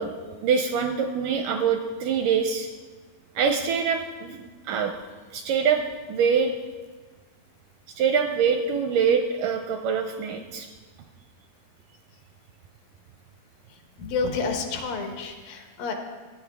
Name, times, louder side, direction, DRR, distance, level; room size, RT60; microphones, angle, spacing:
voice 1, 0.0-2.7 3.4-5.0 5.3-6.5 8.0-10.7, right 6 dB, 80° right, 5 dB, 1.9 m, -24 dB
voice 2, 13.7-15.9, left 4 dB, 75° left, 4 dB, 2.8 m, -30 dB
15.5 x 9.7 x 3.4 m, 1.4 s
omnidirectional pair, 4.2 m